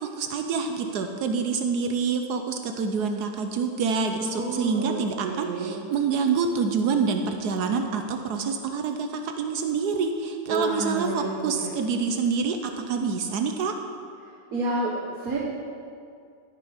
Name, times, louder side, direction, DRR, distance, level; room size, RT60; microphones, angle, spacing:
voice 1, 0.0-13.7, right 5 dB, 80° right, 5 dB, 1.3 m, -27 dB
voice 2, 4.1-5.8 10.5-11.7 14.2-15.4, right 2 dB, 65° right, -4 dB, 1.7 m, -30 dB
13.0 x 6.9 x 5.6 m, 2.3 s
omnidirectional pair, 1.7 m